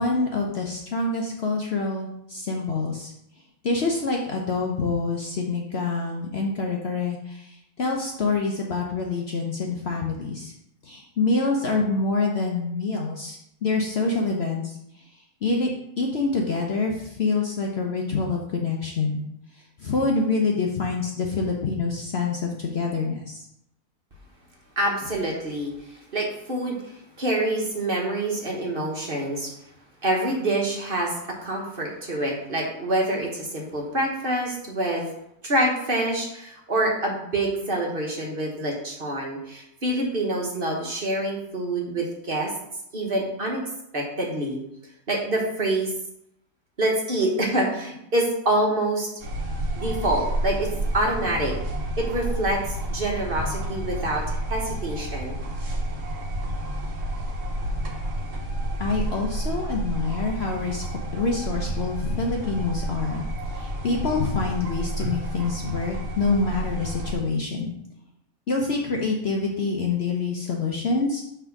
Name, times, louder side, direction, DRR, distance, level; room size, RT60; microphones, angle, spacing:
voice 1, 0.0-3.1 3.6-10.5 10.8-15.7 16.0-19.2 19.8-23.4 58.8-60.9 61.1-67.7 68.5-71.2, left 3 dB, 55° left, 0 dB, 0.8 m, -26 dB
voice 2, 24.8-29.5 30.0-35.1 35.4-42.5 42.9-43.6 43.9-44.6 45.1-45.9 46.8-49.1 49.7-51.5 52.0-54.2 54.5-55.3, right 1 dB, 40° right, -1 dB, 1.4 m, -26 dB
sound 1, 49.2-67.2, right 1 dB, 60° right, 1.3 m, -30 dB
5.9 x 3.5 x 5.8 m, 0.78 s
omnidirectional pair, 1.6 m